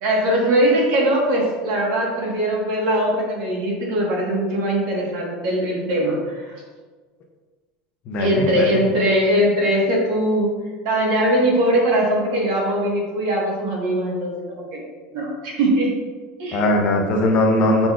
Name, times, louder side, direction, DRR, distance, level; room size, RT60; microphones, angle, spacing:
voice 1, 0.0-6.5 8.2-10.5 10.8-14.8 15.1-15.9 16.4-16.6, right 1 dB, 50° right, -2 dB, 1.2 m, -21 dB
voice 2, 8.1-8.8 16.5-17.9, left 1 dB, 30° left, 2 dB, 0.4 m, -19 dB
5.8 x 3.9 x 2.3 m, 1.4 s
supercardioid pair, 180°, 4 cm